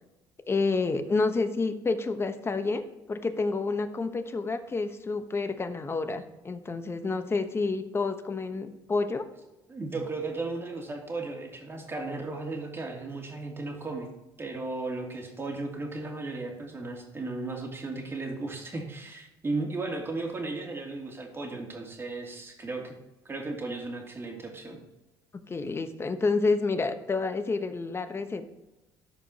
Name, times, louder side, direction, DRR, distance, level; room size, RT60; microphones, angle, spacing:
voice 1, 0.5-2.8 3.1-9.3 25.5-28.5, left 3 dB, 25° left, 9 dB, 1.0 m, -29 dB
voice 2, 9.7-14.1 14.4-23.0 23.2-24.8, right 3 dB, 25° right, 0 dB, 2.6 m, -35 dB
13.0 x 5.2 x 2.9 m, 0.98 s
supercardioid pair, 80°, 9 cm